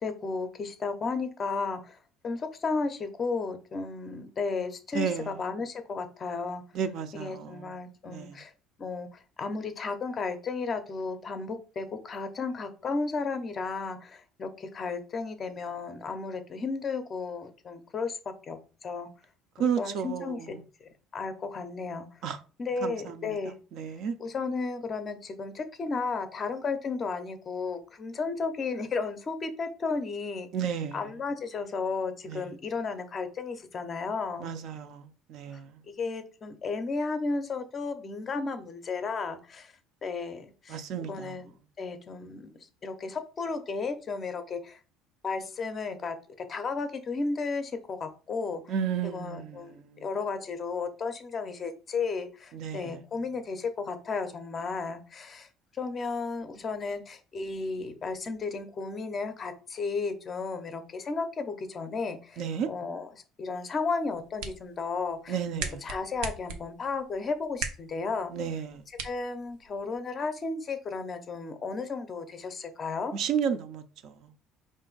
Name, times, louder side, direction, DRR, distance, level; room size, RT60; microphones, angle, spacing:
voice 1, 0.0-2.0 2.2-6.6 7.1-8.5 8.8-18.2 18.5-19.1 19.8-20.6 21.1-22.1 22.6-23.5 24.2-30.5 30.9-34.5 35.9-39.7 40.0-40.8 41.1-41.4 41.8-42.5 42.8-44.8 45.2-46.2 46.5-48.6 49.0-55.5 55.7-62.4 62.7-65.4 65.8-68.3 69.0-73.1, left 4 dB, 25° left, 0.5 m, -33 dB
voice 2, 4.9-5.4 6.7-7.7 8.1-8.4 19.6-20.5 22.2-22.4 22.8-24.2 30.5-31.0 32.3-32.5 34.4-35.8 40.7-41.3 48.7-50.0 52.5-52.9 62.4-62.7 65.3-65.9 68.3-68.8 73.1-74.3, right 7 dB, 55° right, 0.5 m, -33 dB
sound 1, 64.0-70.0, right 6 dB, 90° right, 0.7 m, -41 dB
5.0 x 2.5 x 3.8 m
cardioid pair, 165°, 0 cm